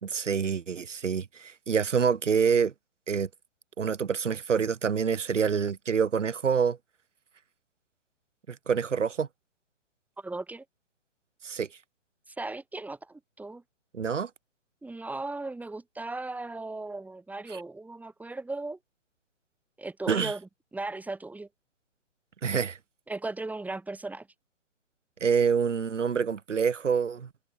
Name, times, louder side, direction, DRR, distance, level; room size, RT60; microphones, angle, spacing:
voice 1, 0.0-2.7 3.1-3.3 3.8-6.8 8.5-9.3 11.4-11.7 13.9-14.3 17.5-17.6 20.1-20.3 22.4-22.8 25.2-27.3, right 6 dB, 75° right, 2.6 m, -26 dB
voice 2, 10.2-10.6 12.3-13.6 14.8-18.8 19.8-21.5 23.1-24.3, right 2 dB, 5° right, 6.1 m, -37 dB
hypercardioid pair, 135°, 37 cm